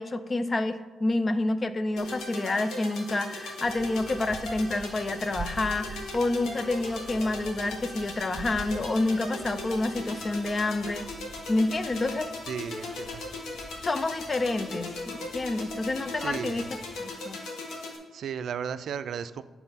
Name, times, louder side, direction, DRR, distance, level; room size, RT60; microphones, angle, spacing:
voice 1, 0.0-11.1 11.5-12.3 13.8-16.7 17.0-17.4, left 2 dB, 35° left, 11 dB, 0.5 m, -28 dB
sound 1, 2.0-18.0, left 2 dB, 90° left, 1.3 m, -38 dB
sound 2, 3.6-17.0, right 3 dB, 35° right, 0.6 m, -46 dB
voice 2, 12.5-13.2 16.2-16.7 18.1-19.4, right 7 dB, 70° right, 13 dB, 0.3 m, -35 dB
7.7 x 4.0 x 5.7 m, 1.3 s
cardioid pair, 90°, 0 cm